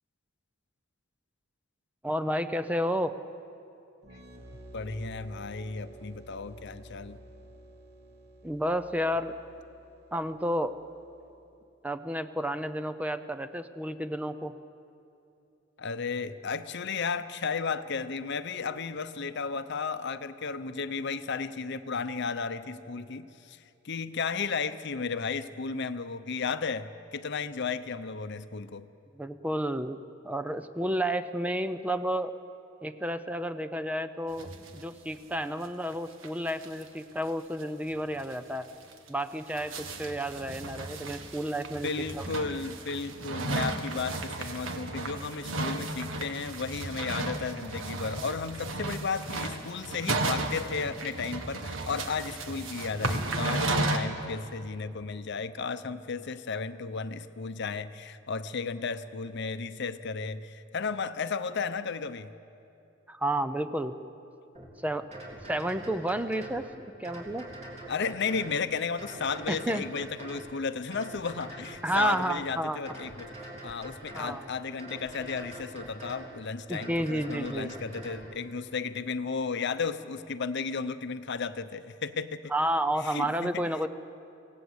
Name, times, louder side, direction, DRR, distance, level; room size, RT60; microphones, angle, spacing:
voice 1, 2.0-3.1 8.4-9.3 10.1-10.7 11.8-14.5 29.2-32.3 32.8-38.7 39.1-41.9 42.1-42.3 63.1-64.0 64.8-65.1 65.4-67.5 69.5-69.8 71.8-72.8 74.2-74.4 76.7-77.7 82.5-83.9, right 1 dB, 5° right, 10 dB, 0.6 m, -31 dB
sound 1, 4.0-11.5, right 1 dB, 60° right, 3.3 m, -51 dB
voice 2, 4.7-7.2 15.8-28.9 41.7-62.3 67.9-82.5 83.0-83.7, left 5 dB, 60° left, 12 dB, 0.8 m, -34 dB
sound 2, 34.4-34.8 35.1-35.2 35.4-35.5 35.9-36.0 36.2-36.8 37.2-37.3 37.6-37.7 38.2-38.3 38.9-54.0, right 2 dB, 80° right, 1.7 m, -34 dB
sound 3, 64.5-64.7 65.1-66.6 67.0-68.6 69.0-70.5 70.9-72.4 72.8-74.4 74.8-76.3 76.7-78.3, right 1 dB, 35° right, 3.8 m, -44 dB
26.0 x 17.0 x 8.1 m, 2.7 s
head